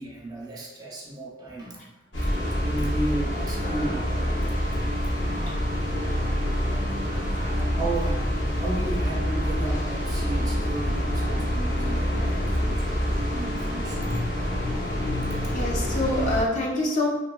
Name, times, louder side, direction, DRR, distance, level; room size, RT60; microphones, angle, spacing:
voice 1, 0.0-1.8 2.2-4.1 4.7-5.6 7.1-14.1 15.3-15.5, right 2 dB, 20° right, -3 dB, 0.5 m, -35 dB
sound 1, 2.1-16.4, equal, 75° left, 0.9 m, -26 dB
voice 2, 6.4-7.1 7.4-7.7 14.1-14.6 15.5-17.1, left 1 dB, 40° left, -3 dB, 0.5 m, -29 dB
2.9 x 2.7 x 2.2 m, 1.1 s
head